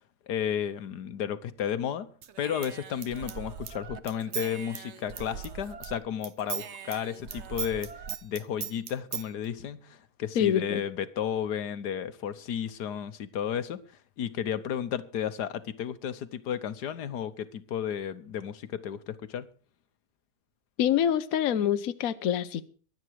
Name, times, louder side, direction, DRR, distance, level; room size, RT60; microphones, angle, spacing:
voice 1, 0.3-2.1 2.4-13.8 14.2-19.5, left 9 dB, 80° left, 1.6 m, -33 dB
Human voice / Scissors, 2.2-6.0 6.2-9.3, right 8 dB, 50° right, 1.1 m, -39 dB
voice 2, 10.4-10.8 20.8-22.6, left 9 dB, 65° left, 1.2 m, -26 dB
23.0 x 8.9 x 4.7 m
omnidirectional pair, 1.7 m